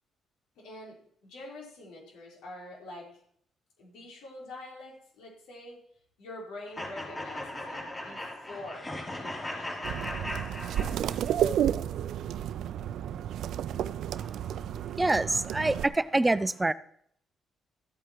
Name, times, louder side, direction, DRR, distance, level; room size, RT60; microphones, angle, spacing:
voice 1, 0.6-3.2 3.8-5.8 6.2-10.5, left 2 dB, 90° left, -2 dB, 4.4 m, -46 dB
sound 1, 6.7-11.4, left 1 dB, 25° left, 3.6 m, -38 dB
sound 2, 9.8-15.8, right 10 dB, 75° right, 0.5 m, -31 dB
voice 2, 15.0-16.7, right 2 dB, 15° right, 15 dB, 0.5 m, -25 dB
13.5 x 8.6 x 4.6 m, 0.67 s
cardioid pair, 90°, 0 cm